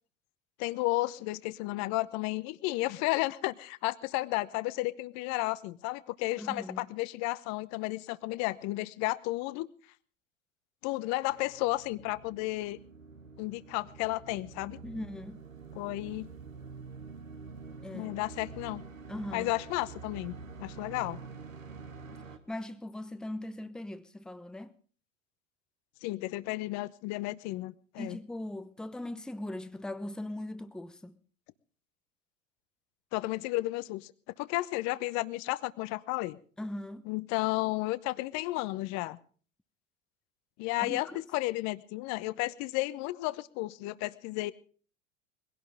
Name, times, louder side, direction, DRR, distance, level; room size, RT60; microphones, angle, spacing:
voice 1, 0.6-9.7 10.8-12.8 13.4-14.8 15.7-16.3 17.9-18.8 19.3-20.3 20.6-21.2 26.0-28.2 33.1-34.1 34.4-36.4 37.1-39.2 40.6-44.5, left 19 dB, 45° left, 1.0 m, -33 dB
voice 2, 6.4-6.8 14.8-15.4 17.8-18.1 19.1-19.5 22.1-22.2 22.5-24.7 28.0-31.2 36.6-37.1 40.8-41.2, left 1 dB, ahead, 0.8 m, -40 dB
sound 1, 11.3-22.4, right 4 dB, 85° right, 1.8 m, -47 dB
21.5 x 17.0 x 3.5 m
hypercardioid pair, 90°, 38 cm